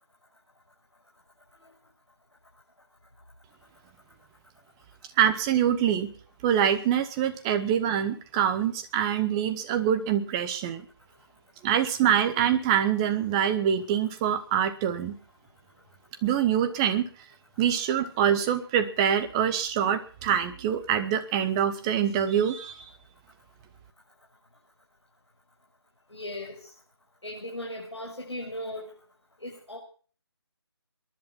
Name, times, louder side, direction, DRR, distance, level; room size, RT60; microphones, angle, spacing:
voice 1, 5.2-6.1 6.4-10.9 11.6-15.2 16.2-17.1 17.6-22.9, right 9 dB, 10° right, 9 dB, 0.8 m, -25 dB
voice 2, 26.1-26.7 27.2-29.0 29.4-29.8, left 1 dB, 80° left, -2 dB, 6.2 m, -37 dB
22.0 x 10.5 x 5.6 m, 0.41 s
figure-of-eight pair, 155°, 14 cm